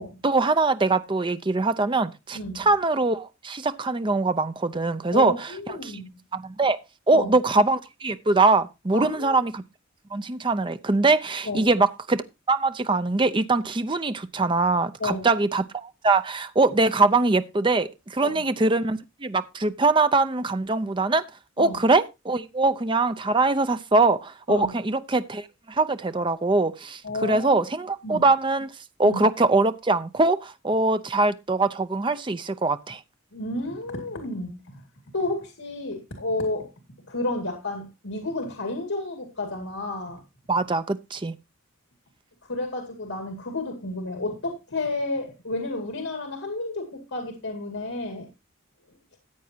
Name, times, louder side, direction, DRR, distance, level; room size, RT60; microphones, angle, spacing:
voice 1, 0.2-5.5 5.8-5.9 6.3-6.8 7.1-9.6 10.1-12.2 12.5-21.2 21.6-28.7 29.0-33.0 40.5-41.4, right 3 dB, 25° right, 0.6 m, -23 dB
voice 2, 2.3-2.7 5.1-6.1 7.1-7.3 8.9-9.4 11.5-11.7 15.0-15.3 18.2-18.4 21.6-21.8 24.5-24.7 27.0-27.6 28.0-28.3 29.0-29.2 33.3-34.8 35.1-36.7 37.0-40.2 42.5-48.3, left 2 dB, 80° left, 2.3 m, -31 dB
14.0 x 8.4 x 2.8 m
head